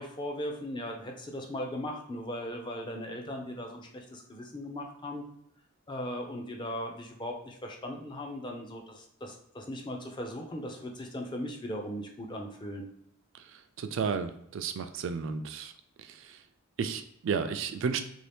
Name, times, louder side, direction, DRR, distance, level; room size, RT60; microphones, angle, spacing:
voice 1, 0.0-5.2 5.9-12.9, left 1 dB, 20° left, 2 dB, 0.5 m, -38 dB
voice 2, 13.8-15.7 16.8-18.0, right 5 dB, 60° right, 9 dB, 0.3 m, -32 dB
2.9 x 2.7 x 3.4 m, 0.73 s
head